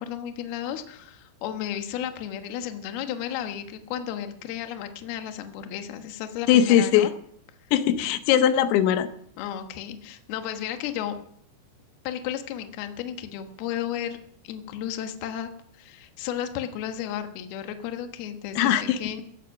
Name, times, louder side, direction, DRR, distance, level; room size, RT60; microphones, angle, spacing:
voice 1, 0.0-7.1 9.4-11.2 12.0-14.2 14.4-19.2, left 10 dB, 65° left, 6 dB, 2.8 m, -33 dB
voice 2, 6.5-7.1 7.7-9.1 18.6-19.0, left 10 dB, 85° left, 10 dB, 3.5 m, -20 dB
15.0 x 15.0 x 6.0 m, 0.64 s
omnidirectional pair, 5.9 m